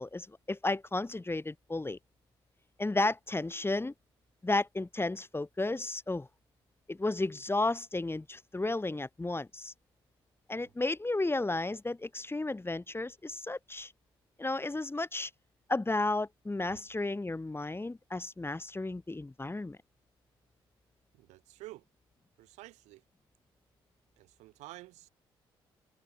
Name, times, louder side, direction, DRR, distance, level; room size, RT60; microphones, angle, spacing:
voice 1, 0.0-2.0 2.8-3.9 4.4-6.3 6.9-9.7 10.5-13.9 14.4-15.3 15.7-19.8, left 2 dB, 20° left, 2.4 m, -33 dB
voice 2, 21.1-21.9 22.4-23.0 24.2-25.1, right 19 dB, 80° right, 5.7 m, -50 dB
hypercardioid pair, 45°, 12 cm